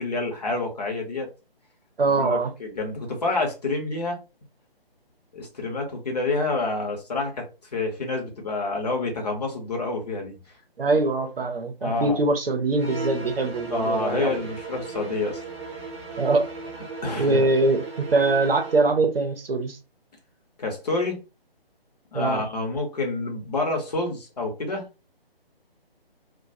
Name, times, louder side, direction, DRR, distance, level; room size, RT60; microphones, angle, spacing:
voice 1, 0.0-1.3 2.2-4.2 5.3-10.3 11.8-12.2 13.7-15.4 17.0-17.5 20.6-21.2 22.1-24.9, left 3 dB, 40° left, 0.8 m, -28 dB
voice 2, 2.0-2.5 10.8-14.4 16.2-16.5 17.2-19.8 22.1-22.4, right 3 dB, 70° right, 0.7 m, -23 dB
sound 1, 12.7-18.9, right 3 dB, 25° right, 0.8 m, -37 dB
2.2 x 2.1 x 2.7 m
figure-of-eight pair, 145°, 30 cm